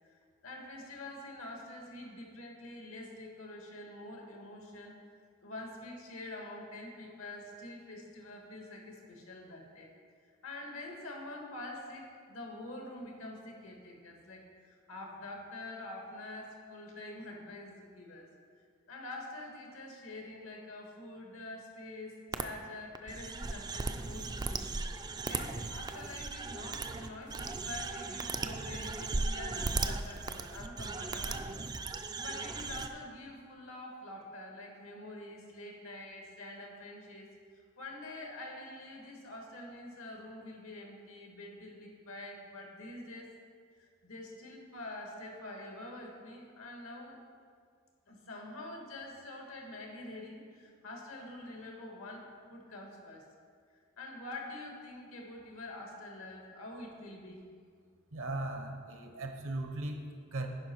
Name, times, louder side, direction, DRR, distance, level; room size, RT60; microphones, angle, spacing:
voice 1, 0.1-4.9 5.4-9.9 10.4-18.3 18.9-24.7 25.0-31.5 32.1-37.3 37.8-43.4 43.8-47.2 48.1-53.2 54.0-57.4, left 2 dB, 75° left, 1 dB, 1.5 m, -46 dB
sound 1, 22.3-22.4 23.0-32.9, right 3 dB, 20° right, 0.3 m, -37 dB
voice 2, 58.1-60.5, right 2 dB, 70° right, 5 dB, 0.9 m, -38 dB
10.5 x 5.2 x 4.4 m, 2.1 s
head